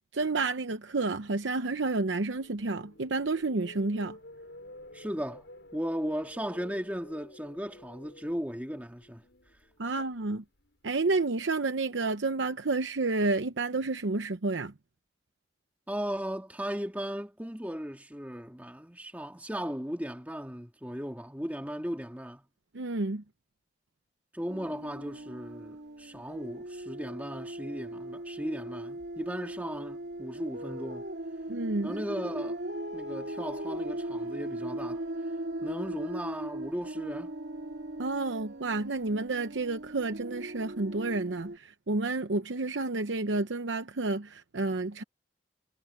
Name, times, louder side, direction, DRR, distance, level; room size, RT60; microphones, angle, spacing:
voice 1, 0.1-4.2 9.8-10.4 10.8-14.7 22.7-23.2 31.5-31.9 38.0-45.0, right 3 dB, 90° right, 0.8 m, -30 dB
sound 1, 1.5-11.6, left 1 dB, 75° left, 5.7 m, -52 dB
voice 2, 4.9-5.5 5.7-9.2 9.8-10.0 15.9-22.5 24.3-31.1 31.8-32.6 32.9-35.0 35.6-37.3, equal, 10° right, 2.1 m, -36 dB
sound 2, 24.5-41.6, right 1 dB, 70° right, 2.5 m, -39 dB
head